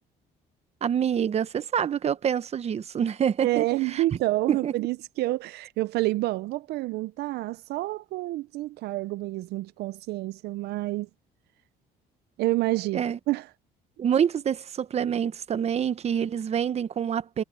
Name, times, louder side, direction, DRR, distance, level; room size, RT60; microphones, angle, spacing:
voice 1, 0.8-4.0 4.5-4.7 12.9-13.2 14.0-17.4, right 8 dB, 40° right, 0.9 m, -26 dB
voice 2, 3.4-11.1 12.4-13.5, right 17 dB, 75° right, 0.5 m, -28 dB
cardioid pair, 110°, 17 cm